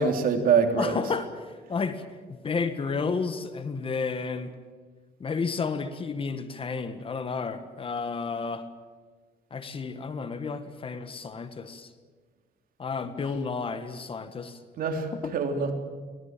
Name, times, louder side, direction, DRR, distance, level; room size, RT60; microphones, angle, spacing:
voice 1, 0.0-1.0 14.8-15.1 15.3-15.7, right 5 dB, 60° right, 4 dB, 3.4 m, -24 dB
voice 2, 0.8-2.0 2.3-4.5 5.2-8.7 9.5-11.9 12.8-14.6 15.1-15.3, left 5 dB, 30° left, 11 dB, 1.6 m, -31 dB
24.5 x 17.5 x 8.9 m, 1.5 s
cardioid pair, 110°, 17 cm